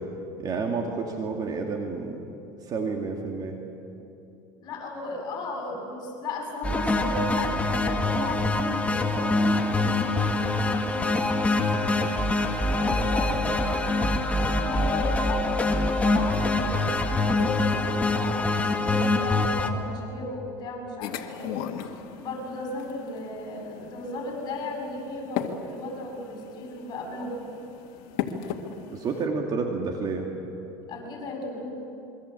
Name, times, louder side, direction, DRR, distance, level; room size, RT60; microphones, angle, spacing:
voice 1, 0.4-2.3 2.6-3.6 28.9-30.3, right 4 dB, 40° right, 2 dB, 2.6 m, -30 dB
voice 2, 4.6-10.8 12.7-15.5 16.0-21.5 22.1-27.4 30.9-31.7, left 2 dB, 45° left, 0 dB, 7.6 m, -35 dB
sound 1, 6.6-19.7, left 2 dB, 15° left, 2.0 m, -24 dB
sound 2, 21.0-29.3, left 9 dB, 65° left, 2.2 m, -37 dB
27.0 x 23.5 x 8.5 m, 2.9 s
supercardioid pair, 120°, 10 cm